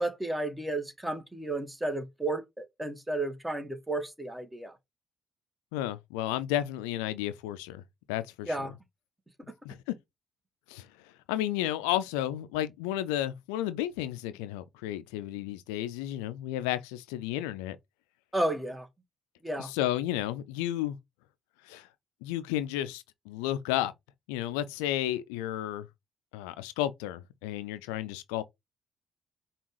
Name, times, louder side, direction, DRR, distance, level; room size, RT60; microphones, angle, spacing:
voice 1, 0.0-4.8 8.5-8.7 9.5-9.6 18.3-18.9 19.4-19.7, right 2 dB, 10° right, 1.2 m, -32 dB
voice 2, 5.7-7.8 8.1-8.7 9.6-9.9 10.7-17.8 19.6-21.0 21.6-21.9 22.2-23.9 24.3-25.9 26.3-28.4, left 13 dB, 85° left, 0.3 m, -32 dB
5.1 x 2.4 x 3.1 m
hypercardioid pair, 50°, 0 cm